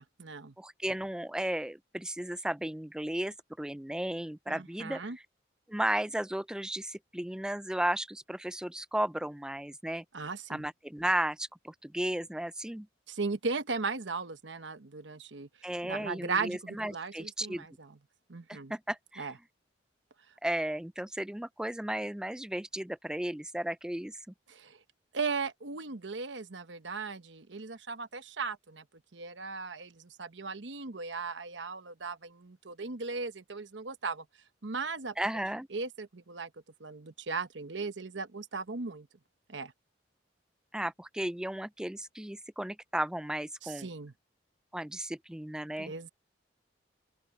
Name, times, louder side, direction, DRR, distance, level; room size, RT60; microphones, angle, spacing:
voice 1, 0.0-0.5 4.5-5.2 10.1-10.7 13.1-15.5 15.8-17.9 18.3-18.7 19.2-19.3 24.5-24.8 25.1-28.8 29.1-34.2 34.6-35.1 35.7-36.5 36.8-39.1 39.5-39.7 43.6-44.1 45.8-46.1, right 4 dB, 75° right, 1.1 m, -37 dB
voice 2, 0.6-5.0 5.7-10.0 10.5-12.9 15.6-17.7 18.5-19.3 20.4-24.2 35.2-35.7 40.7-43.9 44.7-45.9, right 1 dB, 5° right, 0.3 m, -34 dB
open air
head